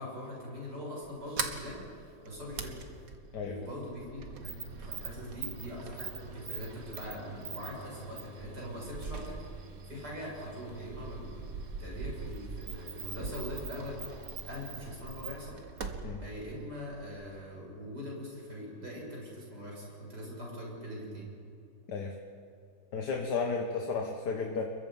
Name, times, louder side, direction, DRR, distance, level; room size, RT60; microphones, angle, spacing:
voice 1, 0.0-2.8 3.4-15.6 16.2-21.3, equal, 75° right, -4 dB, 7.8 m, -42 dB
Sliding door, 1.0-17.4, right 4 dB, 55° right, 1.9 m, -42 dB
voice 2, 22.9-24.6, left 4 dB, 75° left, 2 dB, 1.9 m, -33 dB
28.0 x 22.5 x 5.6 m, 2.5 s
omnidirectional pair, 1.8 m